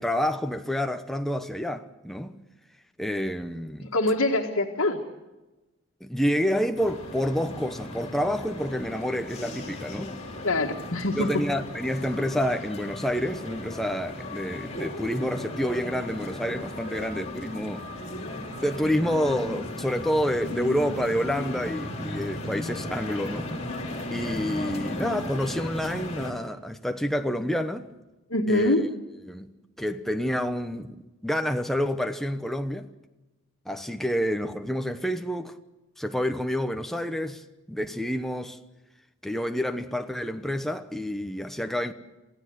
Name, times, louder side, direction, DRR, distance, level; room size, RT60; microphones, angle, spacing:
voice 1, 0.0-2.4 3.0-3.9 6.0-10.1 11.2-17.9 18.6-23.5 24.1-27.9 28.5-28.9 29.3-29.5 29.8-32.9 33.7-35.6 36.0-38.6 39.2-41.9, equal, ahead, 0.9 m, -28 dB
voice 2, 3.8-5.0 10.4-11.3 28.3-28.8, left 2 dB, 80° left, 1.8 m, -24 dB
sound 1, 6.8-26.3, left 1 dB, 30° left, 3.6 m, -36 dB
27.5 x 16.0 x 8.0 m
head